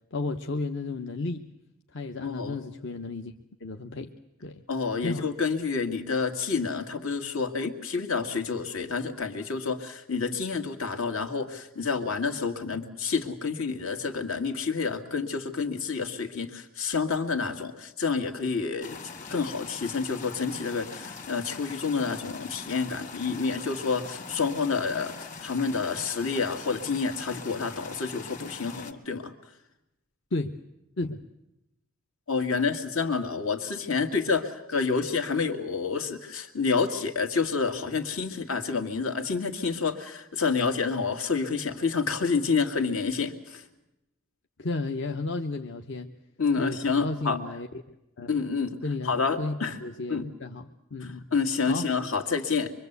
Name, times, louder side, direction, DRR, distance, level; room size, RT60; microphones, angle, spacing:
voice 1, 0.1-1.5 1.9-3.3 3.6-4.1 4.4-4.6 5.0-5.3 30.3-30.6 31.0-31.2 44.6-46.1 46.6-47.7 48.2-48.3 48.8-49.1 49.4-51.4 51.7-51.9, left 3 dB, 60° left, 5 dB, 0.9 m, -33 dB
voice 2, 2.2-2.6 4.7-29.3 32.3-43.6 46.4-47.4 48.3-49.8 50.1-50.3 51.0-52.7, left 5 dB, 75° left, 6 dB, 2.3 m, -29 dB
sound 1, 18.8-28.9, left 4 dB, 35° left, 1.6 m, -42 dB
24.5 x 24.0 x 8.2 m, 0.91 s
head